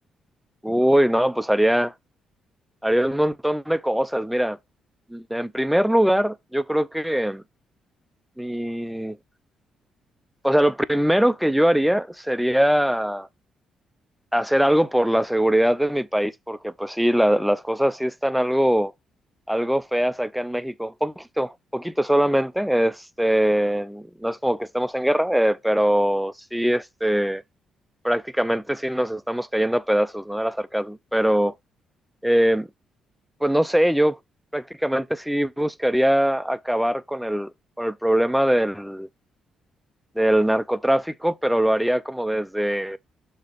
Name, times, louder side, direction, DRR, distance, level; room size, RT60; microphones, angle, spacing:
voice 1, 0.6-1.9 2.8-4.6 5.1-7.4 8.4-9.2 10.4-13.3 14.3-18.9 19.5-27.4 28.0-31.5 32.2-32.7 33.4-34.2 34.5-37.5 37.8-39.1 40.2-43.0, equal, ahead, 0.5 m, -22 dB
6.6 x 2.9 x 5.0 m
cardioid pair, 90°, 0 cm